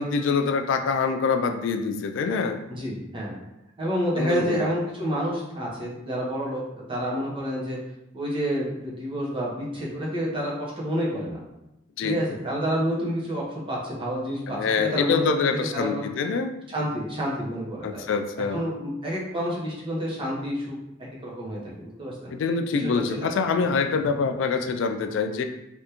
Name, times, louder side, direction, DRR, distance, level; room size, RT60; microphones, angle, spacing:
voice 1, 0.0-2.6 4.2-4.7 12.0-12.2 14.5-16.5 17.8-18.6 22.3-25.4, left 5 dB, 75° left, 7 dB, 0.3 m, -25 dB
voice 2, 2.7-3.4 3.8-7.8 8.1-11.4 12.0-16.1 16.7-18.1 18.5-20.7 21.2-22.3 22.7-23.3, equal, 30° right, -5 dB, 0.9 m, -29 dB
3.4 x 2.5 x 2.9 m, 0.89 s
head